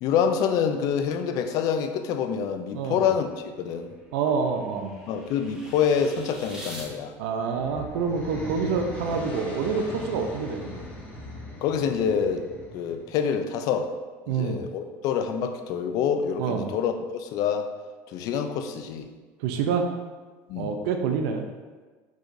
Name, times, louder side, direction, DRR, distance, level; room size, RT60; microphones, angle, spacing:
voice 1, 0.0-3.9 5.1-7.1 11.6-12.5 12.7-13.9 14.3-17.7 18.1-19.1 20.5-20.8, left 7 dB, 60° left, 7 dB, 0.4 m, -26 dB
voice 2, 2.7-3.0 4.1-5.0 7.2-10.8 14.3-14.6 16.4-16.7 19.4-19.9 20.6-21.4, right 5 dB, 85° right, 5 dB, 0.5 m, -27 dB
sound 1, 3.3-6.9, right 1 dB, 10° right, 1.0 m, -45 dB
sound 2, 7.2-13.2, left 1 dB, 20° left, 1.2 m, -40 dB
4.7 x 4.0 x 2.6 m, 1.4 s
cardioid pair, 135°, 7 cm